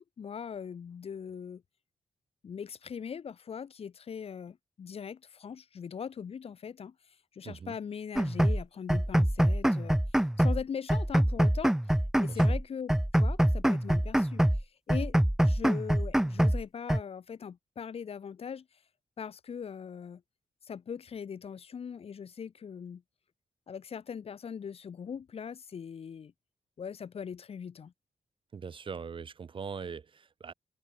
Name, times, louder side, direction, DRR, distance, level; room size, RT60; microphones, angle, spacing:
voice 1, 0.0-1.6 2.4-7.0 7.3-10.0 10.4-11.7 12.2-18.7 19.2-20.2 20.6-23.0 23.7-26.3 26.8-27.9, left 7 dB, 60° left, 1.9 m, -40 dB
voice 2, 7.4-7.8 12.3-12.4 28.5-30.5, right 6 dB, 50° right, 1.2 m, -41 dB
sound 1, 8.2-8.6 8.9-10.6 10.9-12.6 12.9-14.6 14.9-16.6 16.9-17.0, right 1 dB, 5° right, 0.6 m, -25 dB
cardioid pair, 105°, 12 cm